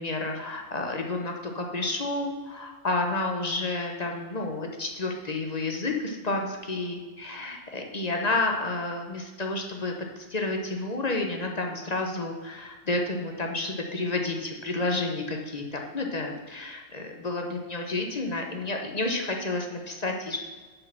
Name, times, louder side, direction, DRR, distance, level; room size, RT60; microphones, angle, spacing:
voice 1, 0.0-20.4, left 2 dB, 35° left, 2 dB, 0.9 m, -30 dB
6.7 x 6.3 x 5.9 m, 1.3 s
omnidirectional pair, 1.3 m